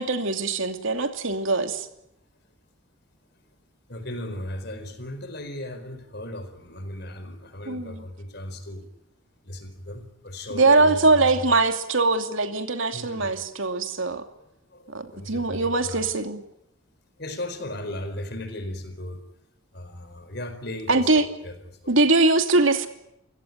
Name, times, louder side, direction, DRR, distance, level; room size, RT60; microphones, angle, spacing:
voice 1, 0.0-1.9 7.7-8.0 10.5-14.2 14.9-16.4 20.9-21.2 21.9-22.9, right 3 dB, 70° right, 2.7 m, -22 dB
voice 2, 3.9-8.9 9.4-11.3 12.9-13.3 14.7-16.1 17.2-19.2 19.7-21.8, left 1 dB, 50° left, 4.5 m, -36 dB
29.0 x 17.0 x 9.5 m
head